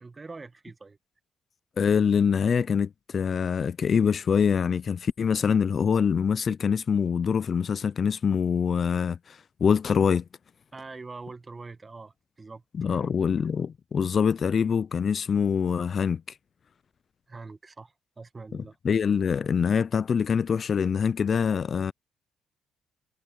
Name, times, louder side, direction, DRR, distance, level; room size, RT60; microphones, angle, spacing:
voice 1, 0.0-1.0 10.7-13.1 17.3-18.7, right 3 dB, 25° right, 1.3 m, -44 dB
voice 2, 1.8-10.2 12.8-16.2 18.5-21.9, left 6 dB, 45° left, 0.4 m, -24 dB
cardioid pair, 100°, 0 cm